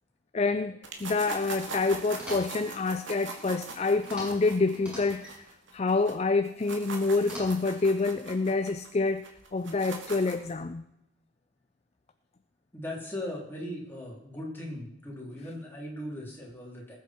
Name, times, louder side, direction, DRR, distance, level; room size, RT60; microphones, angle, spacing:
voice 1, 0.3-5.3 5.7-9.2 9.5-10.8, left 3 dB, 30° left, 0.4 m, -27 dB
sound 1, 0.8-6.1 6.5-10.5, right 4 dB, 65° right, 2.3 m, -41 dB
sound 2, 2.1-2.7 4.0-4.5 4.7-5.4 7.2-7.8, equal, 5° right, 5.8 m, -42 dB
voice 2, 12.7-17.0, left 1 dB, 10° left, 3.5 m, -38 dB
19.5 x 8.3 x 4.5 m
head